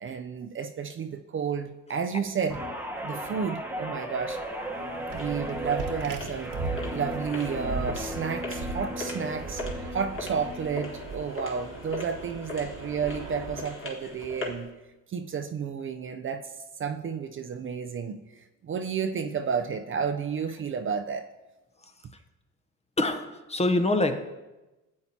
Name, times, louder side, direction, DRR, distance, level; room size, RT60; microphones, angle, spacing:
voice 1, 0.0-2.6 3.0-4.4 5.1-6.5 6.9-9.6 9.9-14.7 15.1-16.5 16.8-18.2 18.6-21.3, right 6 dB, 35° right, 7 dB, 0.5 m, -31 dB
Guitar, 2.5-11.1 11.5-11.8, equal, 5° right, 1.1 m, -36 dB
sound 1, 4.4-14.7, left 2 dB, 35° left, 1.9 m, -41 dB
sound 2, 5.1-13.6, right 4 dB, 70° right, 1.3 m, -39 dB
voice 2, 23.0-24.2, left 2 dB, 20° left, 7 dB, 0.8 m, -26 dB
13.0 x 8.5 x 2.8 m, 1.1 s
cardioid pair, 95°, 35 cm